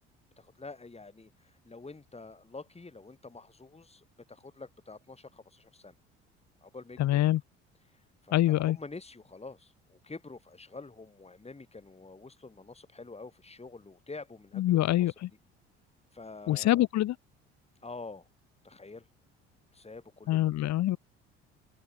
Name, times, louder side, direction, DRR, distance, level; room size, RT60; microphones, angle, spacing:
voice 1, 0.4-5.9 6.6-7.3 8.2-15.1 16.1-16.8 17.8-18.2 18.6-19.0 19.7-20.4, left 3 dB, 20° left, 6.0 m, -47 dB
voice 2, 7.0-7.4 8.3-8.8 14.6-15.3 16.5-17.2 20.3-21.0, left 14 dB, 55° left, 1.8 m, -25 dB
open air
hypercardioid pair, 60°, 33 cm